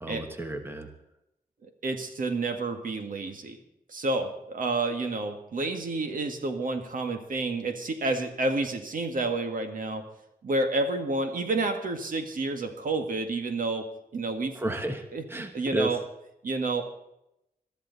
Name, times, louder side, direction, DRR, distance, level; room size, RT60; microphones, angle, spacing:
voice 1, 0.0-0.9 14.5-16.0, right 2 dB, 15° right, 6 dB, 1.3 m, -32 dB
voice 2, 1.8-3.6 3.9-10.1 10.4-13.9 14.1-14.6 15.1-15.2 15.5-16.0 16.4-16.8, right 2 dB, 65° right, 5 dB, 1.9 m, -29 dB
21.5 x 13.5 x 4.1 m, 0.83 s
wide cardioid pair, 175°, 15 cm